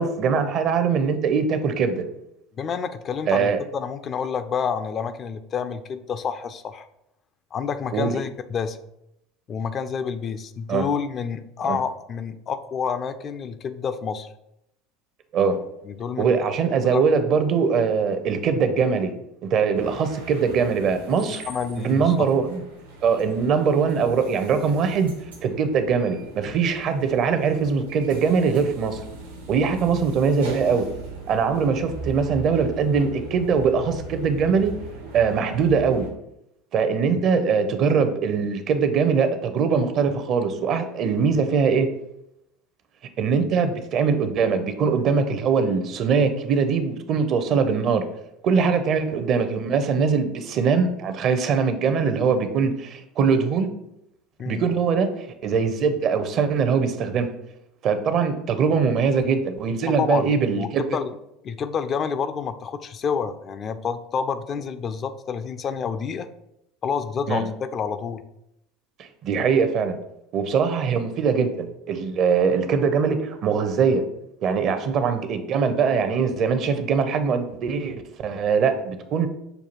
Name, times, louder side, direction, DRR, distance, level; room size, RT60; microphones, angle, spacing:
voice 1, 0.0-2.0 3.3-3.6 7.9-8.1 10.7-10.9 11.7-11.8 15.3-15.6 16.2-19.1 19.4-21.5 21.8-22.6 23.0-25.1 25.4-29.0 29.5-30.9 31.3-34.7 35.1-36.1 36.7-41.9 43.2-48.1 48.4-53.7 54.5-55.1 55.4-57.3 57.8-60.8 67.3-67.5 69.0-70.0 70.3-74.0 74.4-79.3, right 5 dB, 50° right, 9 dB, 0.5 m, -22 dB
voice 2, 2.6-6.9 7.5-8.8 9.5-14.3 15.8-16.5 16.8-17.0 21.5-22.3 37.1-37.2 54.4-54.6 59.8-61.2 61.4-66.3 66.8-68.2, left 6 dB, 40° left, 10 dB, 0.3 m, -29 dB
sound 1, 19.7-36.1, right 2 dB, 85° right, 0.9 m, -40 dB
6.5 x 2.3 x 2.9 m, 0.81 s
hypercardioid pair, 75°, 0 cm